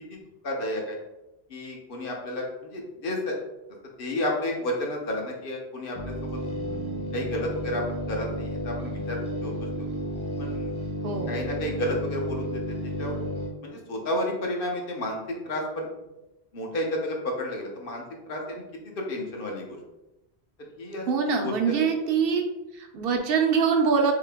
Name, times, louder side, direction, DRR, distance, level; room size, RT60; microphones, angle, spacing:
voice 1, 0.1-1.0 1.5-3.4 4.0-6.4 7.1-9.5 9.8-9.9 10.4-10.7 11.3-13.1 13.6-15.9 16.5-18.6 19.0-19.8 20.8-21.1 21.4-21.5, left 1 dB, 60° left, 0 dB, 0.9 m, -31 dB
sound 1, 5.9-13.5, equal, 30° left, 0.7 m, -32 dB
voice 2, 21.1-22.5 22.7-24.1, right 6 dB, 70° right, 3 dB, 0.7 m, -24 dB
3.7 x 2.8 x 3.3 m, 0.97 s
omnidirectional pair, 1.1 m